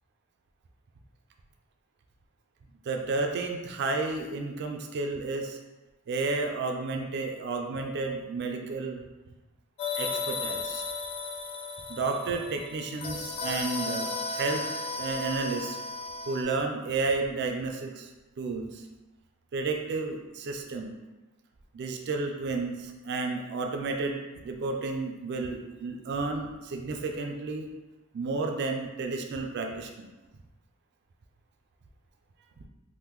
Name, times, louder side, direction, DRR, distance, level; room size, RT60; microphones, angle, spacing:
voice 1, 2.9-5.6 6.1-9.0 10.0-10.8 11.9-14.6 15.0-15.8 16.3-18.1 18.4-18.8 19.5-20.9 21.7-27.7 28.1-30.1, right 3 dB, 50° right, 3 dB, 0.3 m, -32 dB
sound 1, 9.8-16.4, left 3 dB, 25° left, 0.3 m, -35 dB
3.6 x 2.1 x 3.0 m, 1.1 s
head